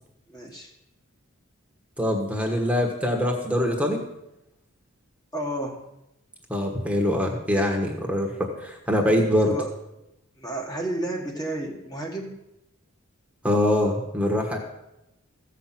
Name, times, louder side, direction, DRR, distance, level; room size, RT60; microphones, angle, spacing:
voice 1, 0.3-0.7 5.3-5.8 9.4-9.7 10.4-12.3, right 1 dB, 15° left, 0 dB, 1.3 m, -31 dB
voice 2, 2.0-4.0 6.5-9.5 13.4-14.6, left 1 dB, 5° right, 1 dB, 1.4 m, -23 dB
15.0 x 5.8 x 7.6 m, 0.89 s
head